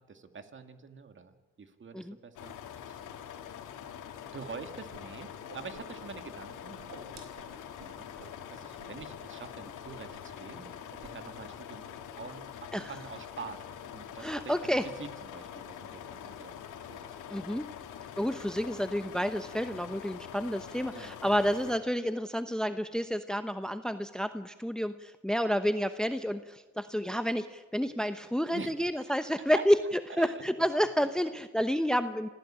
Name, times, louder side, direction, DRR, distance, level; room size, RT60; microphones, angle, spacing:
voice 1, 0.0-1.3 1.6-3.0 4.3-8.1 8.5-11.9 12.2-13.6 13.9-14.7 15.0-17.1 20.9-21.1 28.5-29.2 29.5-29.6 30.2-30.4, right 5 dB, 40° right, 8 dB, 2.2 m, -46 dB
sound 1, 2.4-21.8, left 9 dB, 85° left, 2.4 m, -45 dB
Whoosh swoosh swish, 4.9-5.0 5.3-6.2 6.5-8.4 8.8-9.1 9.3-9.5 9.8-10.4 10.6-11.2, right 5 dB, 65° right, 4.6 m, -52 dB
voice 2, 14.2-14.8 17.3-17.7 18.2-32.3, equal, ahead, 10 dB, 1.0 m, -30 dB
26.5 x 16.0 x 8.8 m, 1.3 s
cardioid pair, 90°, 30 cm